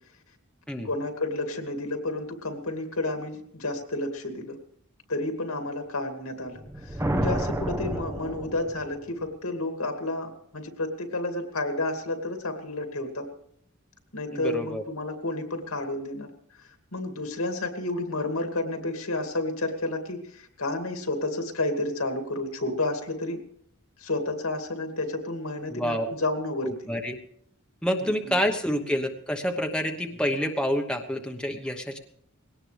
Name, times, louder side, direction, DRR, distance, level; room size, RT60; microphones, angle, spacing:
voice 1, 0.8-4.6 5.1-13.3 14.1-16.3 16.9-23.4 24.0-26.7 28.0-28.4, left 2 dB, 80° left, 5 dB, 2.5 m, -31 dB
sound 1, 6.6-9.1, right 1 dB, 15° right, 0.9 m, -30 dB
voice 2, 14.3-14.8 25.7-26.1 26.6-27.2 27.8-32.0, equal, 5° left, 3 dB, 1.2 m, -28 dB
21.0 x 17.5 x 3.4 m, 0.68 s
head